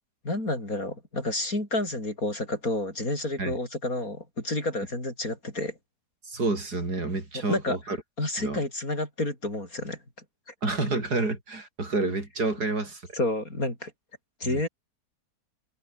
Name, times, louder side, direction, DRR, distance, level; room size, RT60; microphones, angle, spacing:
voice 1, 0.2-5.7 7.3-7.8 8.2-10.0 13.1-13.9 14.4-14.7, left 2 dB, 60° left, 8.1 m, -30 dB
voice 2, 6.2-8.0 8.4-8.6 10.6-13.0 14.4-14.6, right 3 dB, 85° right, 5.3 m, -29 dB
omnidirectional pair, 1.7 m